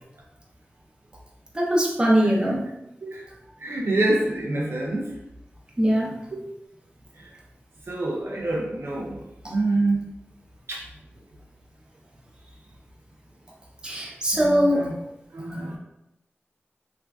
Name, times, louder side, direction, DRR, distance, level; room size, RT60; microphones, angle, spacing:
voice 1, 1.5-2.6 5.8-6.2 9.4-9.5 13.8-14.9, equal, 20° right, -3 dB, 0.7 m, -21 dB
voice 2, 3.6-5.1 7.9-9.2 9.5-10.1 10.7-10.8 14.3-14.9 15.3-15.8, right 2 dB, 75° right, -2 dB, 0.5 m, -26 dB
3.1 x 2.5 x 2.3 m, 0.85 s
wide cardioid pair, 70°, 4 cm